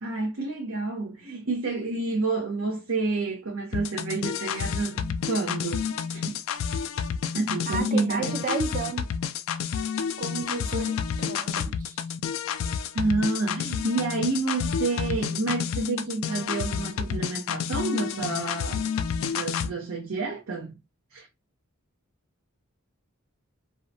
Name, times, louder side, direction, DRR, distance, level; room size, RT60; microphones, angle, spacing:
voice 1, 0.0-5.9 6.1-6.4 7.3-8.4 12.9-18.8 19.3-20.7 21.1-21.3, right 3 dB, 75° right, 0.7 m, -29 dB
sound 1, 3.7-19.7, left 7 dB, 65° left, 0.3 m, -30 dB
voice 2, 7.7-9.1 10.2-11.6, right 4 dB, 40° right, 0.5 m, -32 dB
2.7 x 2.1 x 2.6 m
head